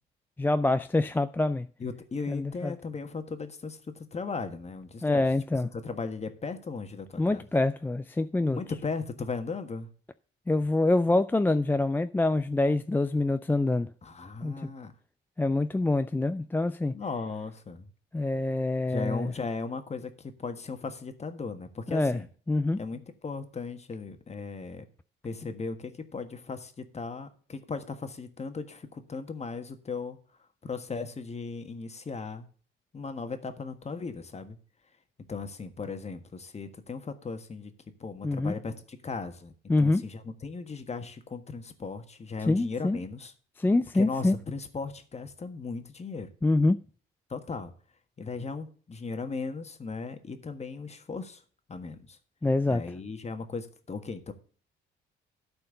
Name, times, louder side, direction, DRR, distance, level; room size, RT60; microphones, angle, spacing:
voice 1, 0.4-1.7 2.3-2.7 5.0-5.7 7.2-8.6 10.5-13.9 14.4-14.7 15.4-16.9 18.1-19.3 21.9-22.2 22.5-22.8 38.2-38.6 39.7-40.0 42.5-43.0 43.6-44.4 46.4-46.8 52.4-52.8, left 2 dB, 10° left, 0.4 m, -25 dB
voice 2, 1.8-5.2 5.8-7.4 8.5-9.9 14.0-14.9 16.9-17.9 18.9-22.3 22.8-24.8 25.2-30.2 30.6-32.5 32.9-34.6 35.3-37.7 38.0-39.5 39.8-43.3 43.9-46.3 47.3-47.7 48.2-51.4 51.7-52.2 52.6-54.3, left 4 dB, 35° left, 1.5 m, -37 dB
12.0 x 4.5 x 6.7 m
cardioid pair, 90°, 20 cm